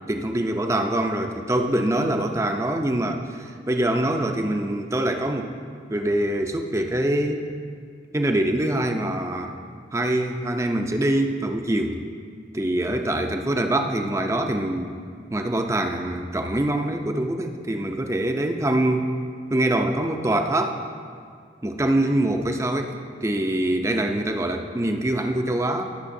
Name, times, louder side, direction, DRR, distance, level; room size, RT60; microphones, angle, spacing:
voice 1, 0.1-5.5 5.9-7.4 8.1-9.5 9.9-12.0 12.5-15.0 15.3-19.2 19.5-20.8 21.6-25.8, right 1 dB, 15° right, 4 dB, 0.5 m, -24 dB
19.5 x 6.7 x 2.6 m, 2.2 s
head